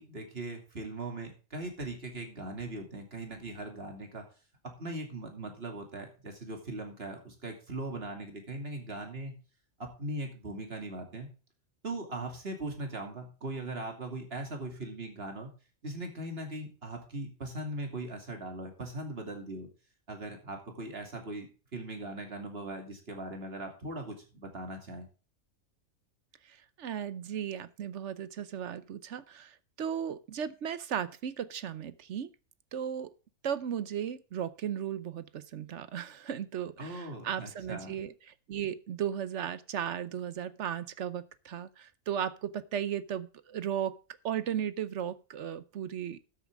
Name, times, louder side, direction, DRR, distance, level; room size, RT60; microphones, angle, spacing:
voice 1, 0.0-4.2 4.6-9.3 9.8-11.3 11.8-15.5 15.8-19.7 20.1-25.0 36.8-37.9, right 2 dB, 45° right, 3 dB, 2.8 m, -40 dB
voice 2, 26.5-32.3 32.7-33.1 33.4-44.0 44.2-46.2, right 9 dB, 60° right, 15 dB, 1.0 m, -36 dB
13.0 x 8.4 x 3.5 m, 0.35 s
omnidirectional pair, 1.4 m